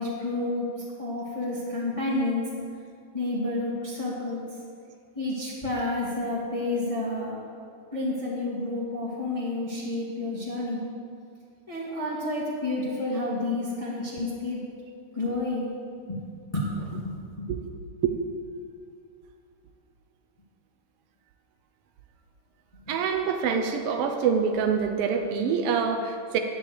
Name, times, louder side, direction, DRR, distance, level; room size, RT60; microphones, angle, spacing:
voice 1, 0.0-2.5 3.1-4.5 5.1-7.4 7.9-10.9 11.7-14.6 15.1-15.7 16.1-16.2 16.5-17.5, left 2 dB, 15° left, -5 dB, 1.5 m, -30 dB
voice 2, 22.9-26.4, right 6 dB, 75° right, 4 dB, 1.3 m, -26 dB
10.5 x 8.8 x 7.6 m, 2.3 s
omnidirectional pair, 3.7 m